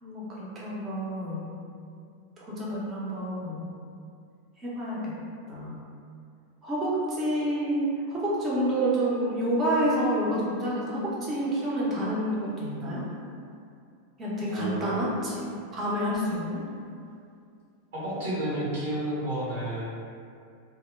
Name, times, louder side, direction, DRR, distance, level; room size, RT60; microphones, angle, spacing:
voice 1, 0.0-1.4 2.4-3.6 4.6-5.1 5.5-5.8 6.6-13.1 14.2-15.4 15.7-16.6, right 1 dB, 25° right, -7 dB, 0.7 m, -28 dB
voice 2, 14.5-14.9 17.9-19.8, right 1 dB, 55° right, -9 dB, 0.9 m, -31 dB
2.1 x 2.1 x 3.2 m, 2.4 s
figure-of-eight pair, 90°, 0 cm